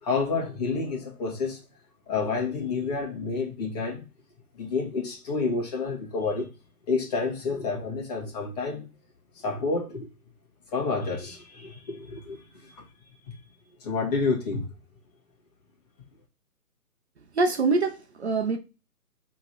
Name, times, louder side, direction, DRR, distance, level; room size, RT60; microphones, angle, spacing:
voice 1, 0.0-1.6 2.1-4.1 4.5-6.5 6.9-8.9 9.3-10.1 10.7-12.8 13.3-13.4 13.8-14.7, left 4 dB, 25° left, 2.6 m, -29 dB
voice 2, 17.3-18.6, right 3 dB, 45° right, 1.0 m, -24 dB
7.5 x 4.2 x 4.8 m
hypercardioid pair, 160°, 47 cm